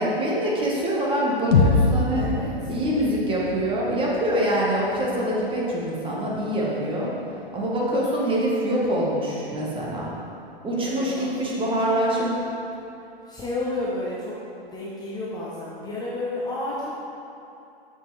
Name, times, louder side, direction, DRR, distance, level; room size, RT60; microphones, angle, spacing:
voice 1, 0.0-2.3 2.7-7.1 7.5-10.1 10.6-12.4, equal, 15° right, -4 dB, 1.3 m, -25 dB
sound 1, 1.5-5.5, left 3 dB, 80° left, 1.0 m, -25 dB
voice 2, 2.1-2.7 10.7-11.4 13.0-14.4 14.6-16.9, left 2 dB, 15° left, -7 dB, 0.8 m, -32 dB
7.3 x 5.9 x 3.2 m, 2.8 s
hypercardioid pair, 120°, 30 cm